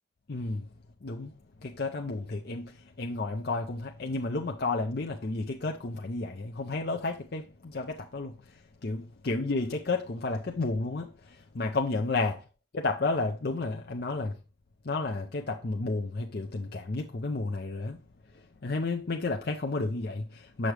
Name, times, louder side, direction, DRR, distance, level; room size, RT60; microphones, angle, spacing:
voice 1, 0.3-0.6 1.0-1.3 1.6-12.4 12.7-14.4 14.8-18.0 18.3-20.7, left 3 dB, 50° left, 0.6 m, -32 dB
7.6 x 6.3 x 3.3 m
head